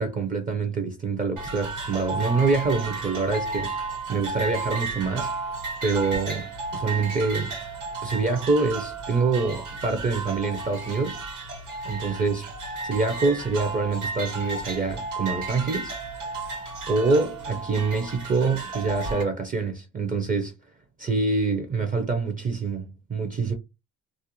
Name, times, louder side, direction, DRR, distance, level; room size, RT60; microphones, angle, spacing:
voice 1, 0.0-3.7 4.1-5.3 5.8-7.6 8.0-11.2 11.8-12.5 12.8-16.0 16.9-20.5 21.0-23.5, right 4 dB, 25° right, 0.5 m, -26 dB
sound 1, 1.4-19.2, right 3 dB, 80° right, 1.3 m, -33 dB
2.4 x 2.1 x 2.9 m
cardioid pair, 90°, 30 cm